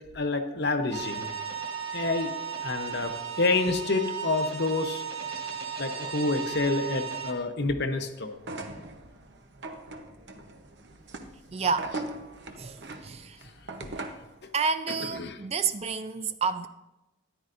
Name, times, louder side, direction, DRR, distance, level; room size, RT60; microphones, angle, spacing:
voice 1, 0.1-1.3 1.9-2.3 2.6-5.0 5.8-8.4 13.4-13.5 13.8-13.9 15.0-15.4, left 3 dB, 55° left, 0.9 m, -28 dB
sound 1, 0.9-7.3, right 7 dB, 80° right, 1.3 m, -35 dB
sound 2, 8.4-14.3, right 2 dB, 55° right, 0.9 m, -40 dB
voice 2, 11.5-12.0 12.5-13.4 14.5-16.7, right 5 dB, 30° right, 0.4 m, -30 dB
13.5 x 10.0 x 2.6 m
head